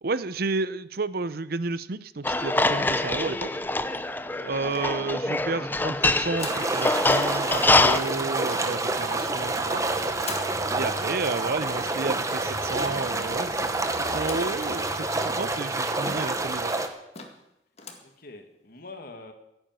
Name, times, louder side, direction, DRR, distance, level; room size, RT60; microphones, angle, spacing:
voice 1, 0.0-3.6 4.4-9.8 10.7-16.7, right 3 dB, 60° right, 15 dB, 0.7 m, -31 dB
sound 1, 2.2-8.0, left 2 dB, 10° left, 0.6 m, -24 dB
voice 2, 4.2-4.5 18.0-19.3, left 2 dB, 55° left, 6 dB, 2.1 m, -45 dB
sound 2, 4.7-5.4 6.3-6.8 8.4-8.9 10.2-10.6 12.6-13.0 14.2-14.6 15.1-15.2 15.4-15.5 16.3-16.4 16.8-16.9 17.1-17.5 17.7-18.1, left 5 dB, 35° left, 1.9 m, -41 dB
sound 3, 6.4-16.9, right 2 dB, 20° right, 1.2 m, -28 dB
16.0 x 9.1 x 9.0 m, 0.86 s
head